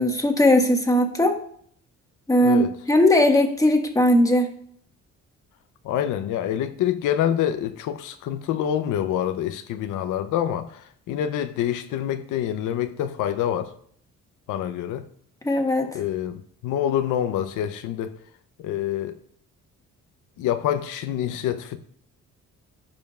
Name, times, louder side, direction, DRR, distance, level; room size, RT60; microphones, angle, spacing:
voice 1, 0.0-1.4 2.3-4.5 15.4-15.9, left 1 dB, 10° left, 1.4 m, -19 dB
voice 2, 5.8-13.7 14.5-15.0 15.9-18.1 18.6-19.1 20.4-21.8, left 10 dB, 85° left, 0.6 m, -26 dB
15.0 x 5.2 x 2.3 m
cardioid pair, 90°, 30 cm